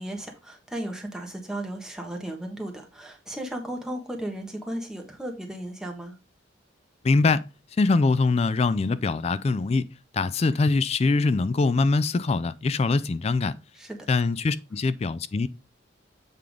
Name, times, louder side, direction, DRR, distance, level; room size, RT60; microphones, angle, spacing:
voice 1, 0.0-6.1 13.7-14.0, right 1 dB, 5° right, 1.3 m, -35 dB
voice 2, 7.0-7.4 7.8-9.9 10.1-13.6 14.1-15.5, left 3 dB, 30° left, 0.3 m, -23 dB
7.7 x 3.6 x 5.0 m
head